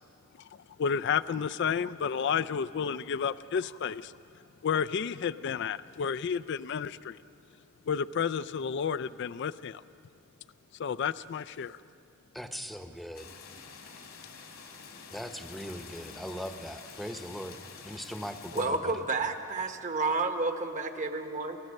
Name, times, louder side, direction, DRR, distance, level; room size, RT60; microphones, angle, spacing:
voice 1, 0.8-4.1 4.6-7.2 7.9-9.8 10.8-11.8, left 7 dB, 55° left, 15 dB, 0.4 m, -31 dB
voice 2, 12.3-13.3 15.1-17.6 17.8-18.9, equal, ahead, 7 dB, 0.9 m, -39 dB
sound 1, 13.1-18.7, left 5 dB, 90° left, 2.7 m, -48 dB
voice 3, 18.5-21.6, right 3 dB, 35° right, 6 dB, 1.3 m, -30 dB
29.0 x 15.0 x 6.5 m, 2.5 s
head